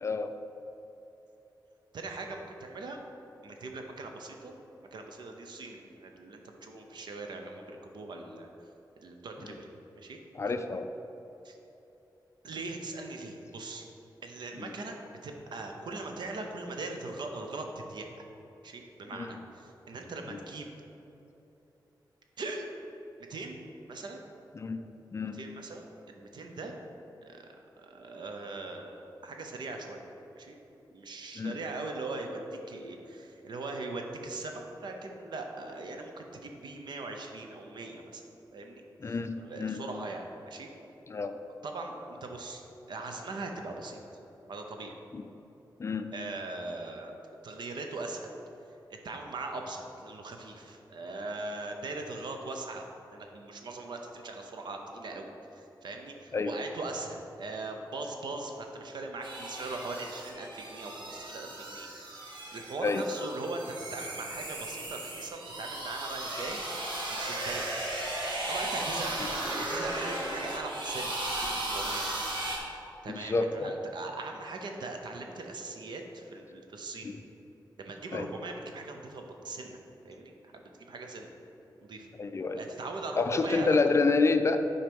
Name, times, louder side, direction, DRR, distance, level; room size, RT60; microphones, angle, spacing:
voice 1, 1.9-3.0 3.4-4.5 4.9-8.5 9.0-9.7 10.0-10.2 11.4-11.6 12.4-13.9 14.2-18.1 18.6-20.7 22.4-22.7 23.3-23.6 23.9-24.2 25.3-26.7 27.2-27.5 27.8-30.0 30.3-30.6 30.9-38.2 38.5-40.7 41.6-42.6 42.9-44.0 44.5-44.9 46.1-47.1 47.4-48.3 48.9-52.9 53.1-62.2 62.5-63.6 63.9-66.6 67.1-67.7 68.5-72.2 73.0-77.1 77.8-79.8 80.0-81.3 81.8-82.1 82.6-83.8, right 3 dB, 70° right, 3 dB, 0.8 m, -40 dB
voice 2, 10.3-10.9 14.6-14.7 19.1-19.3 24.6-24.8 25.1-25.4 31.4-31.6 39.0-39.8 41.1-41.3 45.1-45.2 45.8-46.1 56.3-56.5 62.8-63.0 73.1-73.7 77.0-77.2 78.1-78.3 82.2-82.6 83.2-84.6, left 4 dB, 35° left, 8 dB, 0.4 m, -28 dB
sound 1, 59.2-72.6, right 1 dB, 90° right, 1.3 m, -36 dB
7.6 x 4.3 x 5.3 m, 3.0 s
wide cardioid pair, 140°, 8 cm